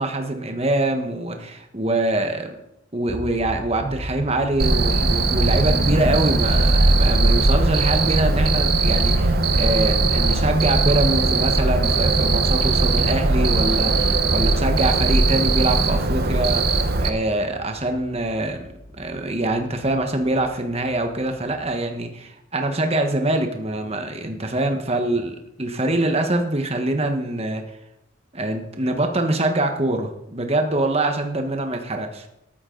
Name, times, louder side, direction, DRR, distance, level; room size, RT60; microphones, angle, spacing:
voice 1, 0.0-2.5 2.9-18.7 19.0-27.6 28.3-32.3, right 1 dB, 30° right, 5 dB, 1.3 m, -24 dB
Cricket, 4.6-17.1, right 3 dB, 50° right, 1.1 m, -19 dB
sound 1, 17.7-21.8, left 1 dB, 5° left, 3.2 m, -36 dB
13.5 x 13.0 x 3.9 m, 0.83 s
head